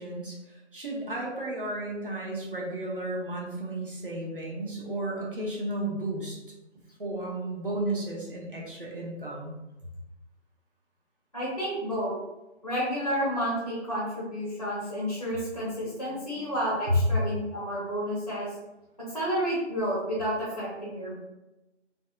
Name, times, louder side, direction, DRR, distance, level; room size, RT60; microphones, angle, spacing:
voice 1, 0.0-6.4 7.0-9.6 16.1-16.4 16.9-17.0, right 1 dB, 50° right, -3 dB, 0.7 m, -33 dB
voice 2, 11.3-12.2 12.6-18.5 19.0-21.2, equal, 30° left, -8 dB, 0.6 m, -30 dB
2.6 x 2.1 x 2.3 m, 0.97 s
figure-of-eight pair, 160°, 36 cm